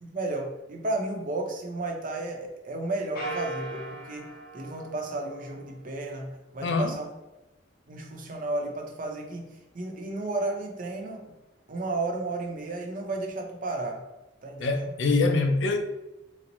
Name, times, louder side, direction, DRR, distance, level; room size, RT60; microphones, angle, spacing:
voice 1, 0.0-4.3 4.5-6.3 6.5-7.0 7.9-9.5 9.7-11.3 11.7-14.0 14.4-14.9, right 2 dB, 50° right, 0.6 m, -33 dB
sound 1, 3.1-5.9, right 1 dB, 55° left, 0.8 m, -38 dB
voice 2, 6.6-7.0 14.6-15.8, left 3 dB, 75° left, 0.5 m, -24 dB
4.0 x 2.0 x 2.9 m
head